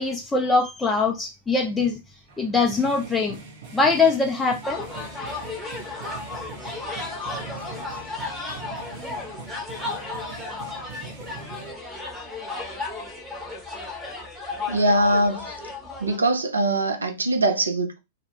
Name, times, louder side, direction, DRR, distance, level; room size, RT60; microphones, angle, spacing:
voice 1, 0.0-2.0 2.4-3.4 3.7-4.9, left 4 dB, 10° left, 0.4 m, -22 dB
sound 1, 2.3-11.7, right 5 dB, 45° right, 0.8 m, -42 dB
sound 2, 4.6-16.2, left 3 dB, 10° right, 0.9 m, -34 dB
voice 2, 14.7-15.5 16.0-18.0, right 1 dB, 75° right, 0.5 m, -22 dB
2.4 x 2.1 x 2.9 m
figure-of-eight pair, 100°, 0 cm